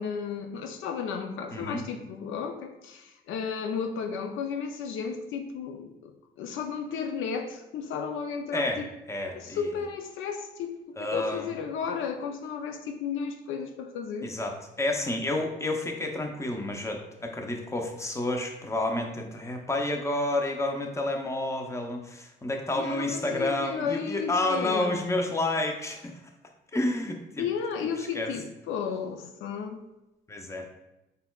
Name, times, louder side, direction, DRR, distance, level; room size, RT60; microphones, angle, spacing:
voice 1, 0.0-6.1 6.4-8.8 9.4-14.3 22.7-24.9 27.4-29.8, left 6 dB, 85° left, 5 dB, 0.5 m, -33 dB
voice 2, 1.5-1.8 8.5-8.8 9.1-9.7 11.0-11.5 14.2-26.2 26.7-27.5 28.0-28.3 30.3-30.7, left 2 dB, 15° left, 3 dB, 0.6 m, -30 dB
4.1 x 4.0 x 2.3 m, 0.95 s
cardioid pair, 90°, 20 cm